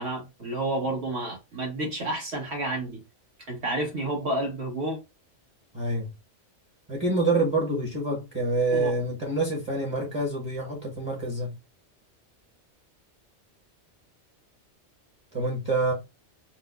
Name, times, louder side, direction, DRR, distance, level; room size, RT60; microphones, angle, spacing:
voice 1, 0.0-3.0 3.5-5.0 8.7-8.9, right 1 dB, 65° right, 1.6 m, -30 dB
voice 2, 5.7-6.1 6.9-11.6 15.3-15.9, right 2 dB, 25° right, 0.9 m, -27 dB
4.2 x 2.2 x 2.3 m
omnidirectional pair, 1.2 m